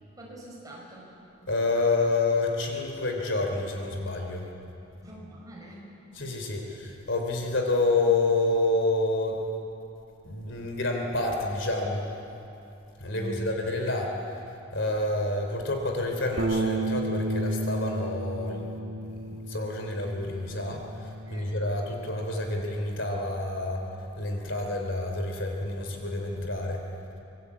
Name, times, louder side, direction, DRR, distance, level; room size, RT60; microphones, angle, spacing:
voice 1, 0.2-1.2 5.0-5.9 13.1-13.5 21.3-21.6, equal, 15° right, -3 dB, 5.8 m, -44 dB
voice 2, 1.5-4.5 6.2-9.5 10.2-12.1 13.0-14.2 14.7-18.7 19.1-23.8 24.2-26.8, left 2 dB, 60° left, 2 dB, 3.4 m, -28 dB
Bass guitar, 16.4-22.6, right 2 dB, 60° right, 1.8 m, -33 dB
25.5 x 22.0 x 8.4 m, 2.8 s
head